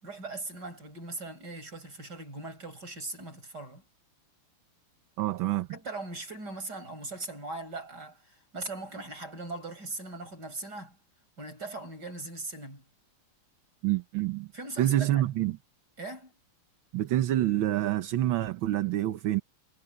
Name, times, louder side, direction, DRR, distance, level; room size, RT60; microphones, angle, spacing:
voice 1, 0.0-3.8 5.7-11.0 11.4-12.9 14.5-15.2 16.0-16.3, right 2 dB, 45° right, 7.2 m, -40 dB
voice 2, 5.2-5.7 13.8-14.5 14.8-15.6 16.9-19.4, right 13 dB, 70° right, 1.6 m, -27 dB
omnidirectional pair, 2.4 m